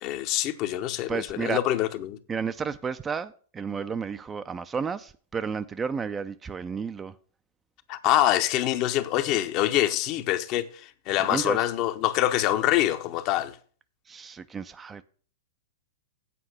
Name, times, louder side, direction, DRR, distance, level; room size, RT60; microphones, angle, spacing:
voice 1, 0.0-2.2 7.9-13.6, left 13 dB, 40° left, 0.7 m, -25 dB
voice 2, 1.1-1.6 2.3-7.1 11.2-11.6 14.1-15.0, right 6 dB, 20° right, 0.4 m, -32 dB
8.4 x 4.7 x 7.3 m
figure-of-eight pair, 105°, 0 cm